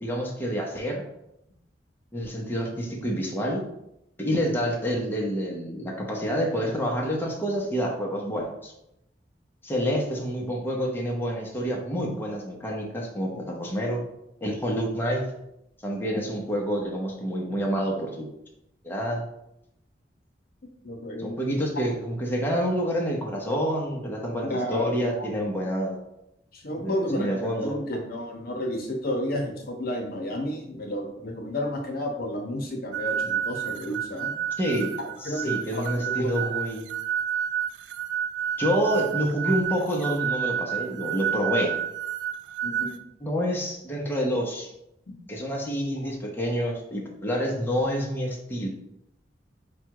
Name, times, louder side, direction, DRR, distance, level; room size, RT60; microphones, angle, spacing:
voice 1, 0.0-1.0 2.1-3.6 4.2-8.7 9.6-14.0 14.4-15.2 15.8-18.3 18.8-19.2 21.2-26.0 26.8-27.8 34.6-34.9 35.2-36.9 38.6-41.7 43.2-44.7 45.3-48.7, equal, 15° left, -2 dB, 0.7 m, -28 dB
voice 2, 20.8-21.5 24.4-25.3 26.5-34.3 35.2-36.5 42.6-43.0, left 1 dB, 60° left, 2 dB, 0.8 m, -31 dB
sound 1, 32.9-43.0, right 9 dB, 80° right, 0.3 m, -30 dB
4.9 x 2.3 x 4.6 m, 0.81 s
head